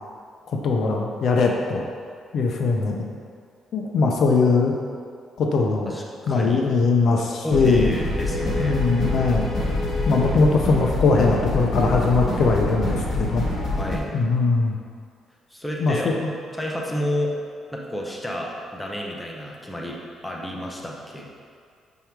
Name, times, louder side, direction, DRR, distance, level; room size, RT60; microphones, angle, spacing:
voice 1, 0.6-1.9 2.3-3.0 3.7-4.7 5.4-5.9 6.3-7.9 8.6-9.5 10.1-13.4 14.1-14.8 15.8-16.1, left 4 dB, 50° left, 1 dB, 0.6 m, -20 dB
voice 2, 5.9-6.6 7.4-8.9 13.8-14.1 15.5-16.1 16.5-17.3 17.7-21.3, equal, 5° left, -2 dB, 0.6 m, -30 dB
sound 1, 7.5-14.0, left 2 dB, 35° left, 1.6 m, -26 dB
5.4 x 4.4 x 4.6 m, 2.2 s
cardioid pair, 160°, 0 cm